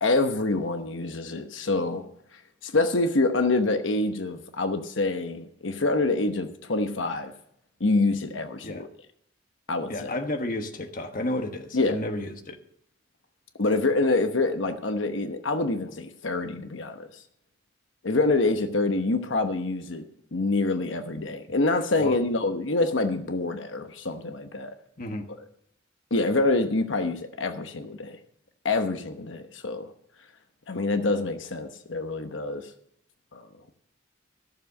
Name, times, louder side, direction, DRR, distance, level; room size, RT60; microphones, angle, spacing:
voice 1, 0.0-2.0 2.6-7.3 7.8-8.8 9.7-10.1 11.7-12.0 13.6-17.1 18.0-20.0 20.3-24.7 26.1-28.2 28.6-29.9 30.7-32.7 33.3-33.5, left 2 dB, 75° left, 1.0 m, -26 dB
voice 2, 9.9-12.6 22.0-22.2 25.0-25.3, left 1 dB, 45° left, 1.2 m, -32 dB
14.5 x 7.2 x 6.5 m
head